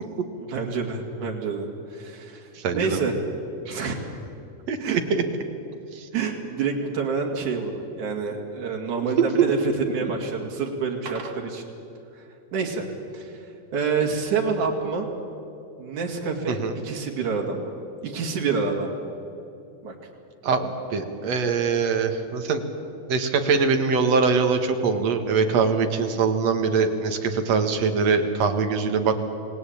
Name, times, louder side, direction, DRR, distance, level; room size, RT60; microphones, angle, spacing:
voice 1, 0.5-3.1 3.7-4.0 4.8-5.0 6.1-11.6 12.1-12.2 12.5-12.9 13.1-13.5 13.7-15.1 15.8-17.7 18.0-18.9 19.8-19.9, right 5 dB, 85° right, 0 dB, 3.9 m, -27 dB
voice 2, 2.6-3.0 4.7-5.2 5.9-6.1 9.0-10.1 16.5-16.7 20.4-22.6 23.1-29.2, right 5 dB, 65° right, 6 dB, 2.9 m, -23 dB
28.5 x 19.0 x 8.9 m, 2.8 s
omnidirectional pair, 3.4 m